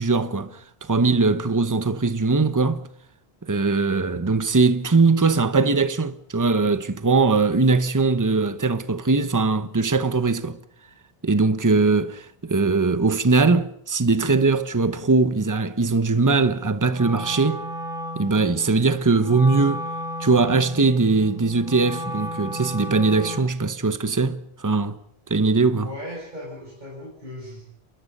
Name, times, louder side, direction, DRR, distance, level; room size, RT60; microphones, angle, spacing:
voice 1, 0.0-2.8 3.4-10.6 11.2-17.6 18.2-19.9 20.2-25.0 25.3-25.9, right 3 dB, 20° right, 0.9 m, -21 dB
Wind instrument woodwind instrument, 16.9-23.6, equal, 5° right, 3.7 m, -34 dB
voice 2, 25.8-27.6, equal, 45° right, 7.1 m, -37 dB
29.0 x 23.0 x 5.5 m
omnidirectional pair, 1.1 m